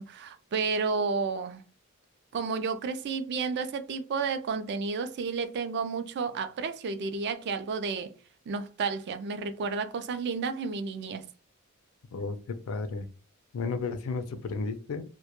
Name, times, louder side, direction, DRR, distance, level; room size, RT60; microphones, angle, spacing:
voice 1, 0.0-1.6 2.3-8.1 8.5-11.2, right 4 dB, 50° right, 0.3 m, -31 dB
voice 2, 12.1-13.1 13.5-15.0, left 4 dB, 70° left, 0.4 m, -33 dB
2.1 x 2.1 x 2.8 m
head